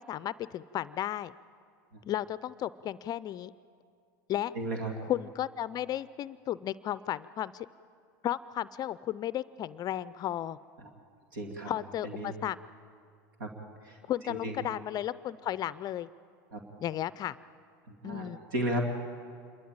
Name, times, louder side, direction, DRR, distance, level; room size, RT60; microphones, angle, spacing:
voice 1, 0.0-1.3 2.0-3.5 4.3-4.5 5.0-7.7 8.2-10.6 11.7-12.6 14.1-16.1 16.8-17.4 18.0-18.4, left 12 dB, 40° left, 17 dB, 0.4 m, -34 dB
voice 2, 4.5-4.9 10.8-10.9 11.3-11.7 12.0-12.3 13.4-13.5 13.8-14.0 14.2-14.6 16.5-16.6 17.9-18.9, right 1 dB, 75° right, 3 dB, 2.3 m, -34 dB
27.5 x 13.0 x 8.8 m, 2.3 s
hypercardioid pair, 100°, 11 cm